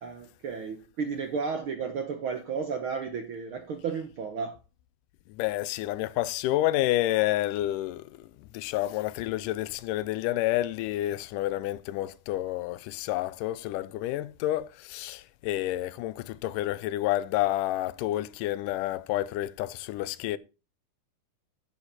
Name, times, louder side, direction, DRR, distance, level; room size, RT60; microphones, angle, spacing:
voice 1, 0.0-4.6, right 5 dB, 65° right, 1.3 m, -33 dB
voice 2, 5.3-8.3 8.5-20.4, left 15 dB, 90° left, 2.2 m, -29 dB
10.0 x 8.3 x 4.1 m
omnidirectional pair, 3.6 m